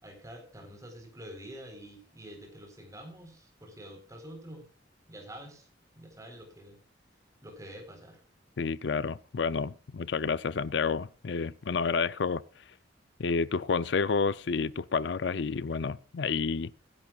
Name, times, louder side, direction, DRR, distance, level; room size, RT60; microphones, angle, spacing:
voice 1, 0.0-4.7 5.1-5.7 6.0-6.8 7.4-8.2, equal, 20° right, 4.1 m, -47 dB
voice 2, 8.6-12.4 13.2-16.7, left 5 dB, 65° left, 0.5 m, -30 dB
23.0 x 11.0 x 2.4 m
head